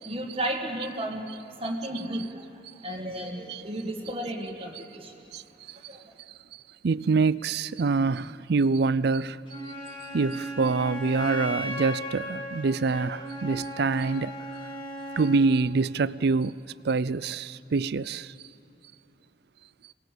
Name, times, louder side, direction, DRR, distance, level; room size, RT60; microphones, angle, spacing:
voice 1, 0.0-5.1 5.7-6.1, right 1 dB, 30° right, 1.7 m, -34 dB
voice 2, 6.8-9.4 10.1-14.3 15.2-16.5 16.8-18.3, right 4 dB, 60° right, 0.4 m, -25 dB
Wind instrument woodwind instrument, 9.5-15.5, equal, 25° left, 2.5 m, -37 dB
27.0 x 19.0 x 7.5 m
head